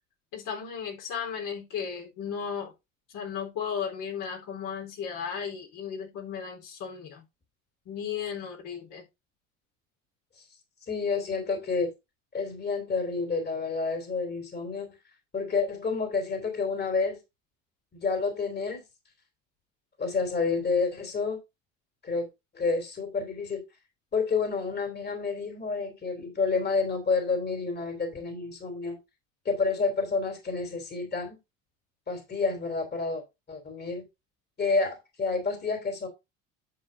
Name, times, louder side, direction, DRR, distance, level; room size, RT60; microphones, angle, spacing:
voice 1, 0.3-2.7 3.1-7.2 7.9-9.0, left 7 dB, 55° left, 3.9 m, -35 dB
voice 2, 10.9-11.9 12.3-15.0 15.3-17.2 17.9-18.8 20.0-21.4 22.0-22.3 22.5-23.6 24.1-29.0 29.4-31.4 32.1-33.2 33.5-34.0 34.6-36.1, left 4 dB, 25° left, 3.2 m, -29 dB
10.5 x 7.4 x 2.7 m
hypercardioid pair, 75°, 38 cm